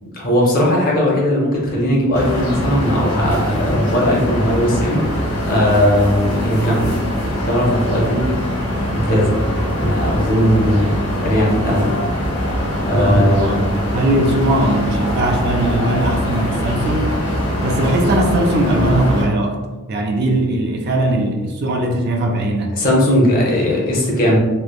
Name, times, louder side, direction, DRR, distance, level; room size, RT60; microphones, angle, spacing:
voice 1, 0.0-6.9 7.4-8.4 8.9-9.4 9.8-11.9 12.8-13.6 22.8-24.4, equal, 45° left, -3 dB, 0.7 m, -18 dB
sound 1, 2.1-19.2, left 1 dB, 85° left, 0.8 m, -22 dB
voice 2, 13.0-17.2 17.6-19.6 19.9-22.8, right 1 dB, 50° right, 3 dB, 0.3 m, -19 dB
3.1 x 2.0 x 2.3 m, 1.2 s
head